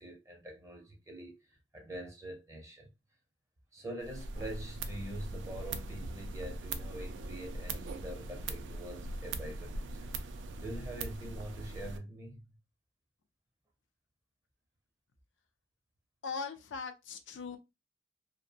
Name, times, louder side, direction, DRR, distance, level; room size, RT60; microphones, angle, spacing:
voice 1, 0.0-2.9 3.7-10.1 10.6-12.6, right 1 dB, 15° right, 0.6 m, -45 dB
sound 1, 4.0-12.0, right 2 dB, 85° right, 0.4 m, -41 dB
voice 2, 16.2-17.6, left 5 dB, 85° left, 0.4 m, -40 dB
2.5 x 2.1 x 2.7 m
head